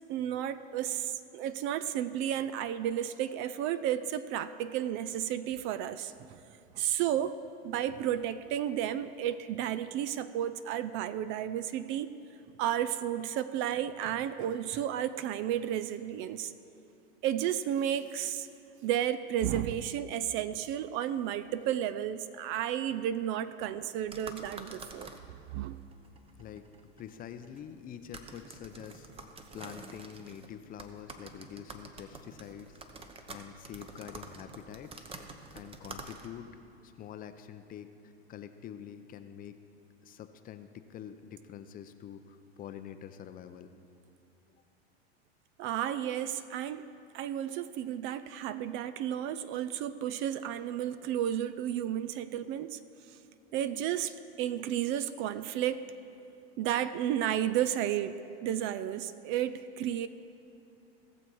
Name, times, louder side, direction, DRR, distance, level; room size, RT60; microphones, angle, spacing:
voice 1, 0.1-6.4 6.7-7.4 7.6-12.1 12.6-16.5 17.2-18.5 18.8-25.1 25.5-25.8 45.6-46.9 47.1-52.8 53.1-53.2 53.5-55.8 56.6-60.1, right 10 dB, 40° right, 14 dB, 0.4 m, -32 dB
sound 1, 24.0-36.5, right 3 dB, 15° right, 0.8 m, -49 dB
voice 2, 27.0-29.1 29.5-32.8 33.3-34.9 35.5-36.5 36.8-39.6 40.0-43.7 44.5-44.6, left 9 dB, 25° left, 9 dB, 0.6 m, -46 dB
18.0 x 7.0 x 4.6 m, 2.7 s
hypercardioid pair, 115°, 32 cm